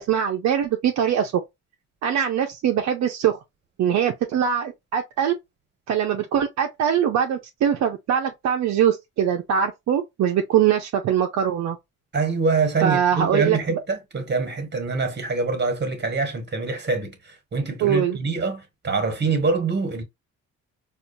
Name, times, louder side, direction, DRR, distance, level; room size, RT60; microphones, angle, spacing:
voice 1, 0.0-1.3 2.0-3.4 3.8-5.3 5.9-11.8 12.8-13.8 17.8-18.2, right 9 dB, 65° right, 0.6 m, -22 dB
voice 2, 12.1-20.0, right 4 dB, 35° right, 1.4 m, -25 dB
4.3 x 2.5 x 2.6 m
cardioid pair, 90°, 30 cm